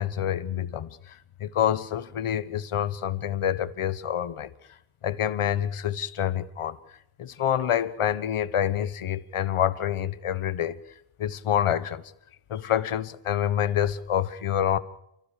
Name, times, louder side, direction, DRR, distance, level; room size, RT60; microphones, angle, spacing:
voice 1, 0.0-4.5 5.0-6.8 7.2-10.8 11.2-12.0 12.5-14.8, left 10 dB, 80° left, 1.3 m, -27 dB
29.5 x 15.5 x 6.7 m
wide cardioid pair, 105°, 50 cm